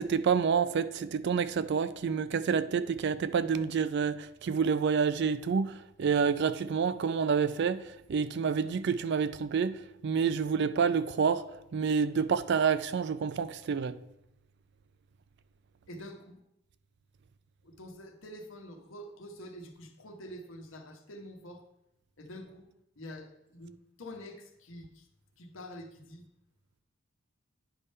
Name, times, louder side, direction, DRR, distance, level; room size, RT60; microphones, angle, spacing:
voice 1, 0.0-7.8 8.1-9.8 10.0-11.4 11.7-13.9, right 6 dB, 50° right, 0.3 m, -28 dB
voice 2, 15.9-16.4 17.6-21.6 22.2-22.7 23.0-25.1 25.4-26.2, equal, 60° left, 1.0 m, -46 dB
9.8 x 3.4 x 5.4 m
head